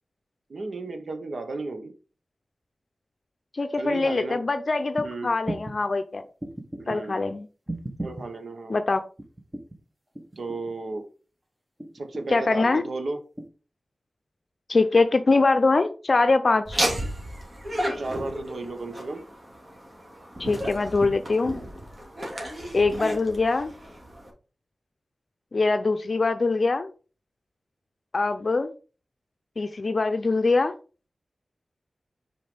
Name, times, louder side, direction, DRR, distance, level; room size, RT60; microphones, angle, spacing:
voice 1, 0.5-1.9 3.8-4.4 5.0-5.3 6.8-7.2 8.0-8.8 10.4-11.0 11.9-13.2 18.0-19.2, right 3 dB, 70° right, 6 dB, 1.3 m, -34 dB
voice 2, 3.5-6.2 6.9-7.5 8.7-9.0 12.3-12.8 14.7-16.9 20.4-21.6 22.7-23.7 25.5-26.9 28.1-28.7 29.6-30.7, left 3 dB, 55° left, 9 dB, 0.5 m, -23 dB
sound 1, 4.9-5.1 5.5-5.8 6.4-7.0 7.7-8.3 9.2-9.8 10.1-10.8 11.8-12.4 13.4-13.5, right 1 dB, 15° right, 1.2 m, -35 dB
Laughter, 16.6-24.3, equal, 35° right, 2.5 m, -33 dB
5.3 x 4.6 x 5.1 m, 0.36 s
wide cardioid pair, 70°, 0 cm